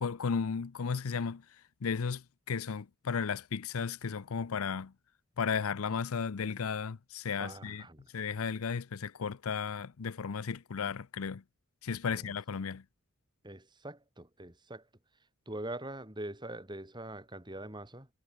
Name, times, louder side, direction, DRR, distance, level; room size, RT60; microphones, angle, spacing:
voice 1, 0.0-1.4 1.8-4.9 5.4-7.8 8.1-11.4 11.8-12.8, left 6 dB, 80° left, 0.6 m, -34 dB
voice 2, 7.4-8.1 12.1-12.3 13.4-14.9 15.5-18.1, right 1 dB, 20° right, 3.1 m, -43 dB
head